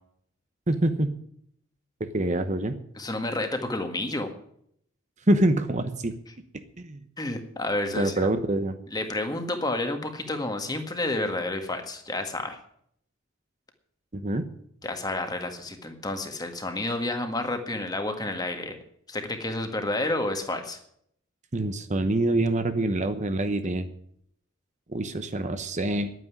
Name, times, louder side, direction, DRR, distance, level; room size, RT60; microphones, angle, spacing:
voice 1, 0.7-1.1 2.0-2.8 5.3-6.1 6.8-7.0 7.9-8.8 14.1-14.4 21.5-23.9 24.9-26.1, right 1 dB, 35° right, 9 dB, 0.9 m, -25 dB
voice 2, 3.0-4.3 7.2-8.3 8.9-12.6 14.8-18.8 19.1-20.8, left 2 dB, 20° left, 6 dB, 1.7 m, -30 dB
10.5 x 9.3 x 9.7 m, 0.68 s
head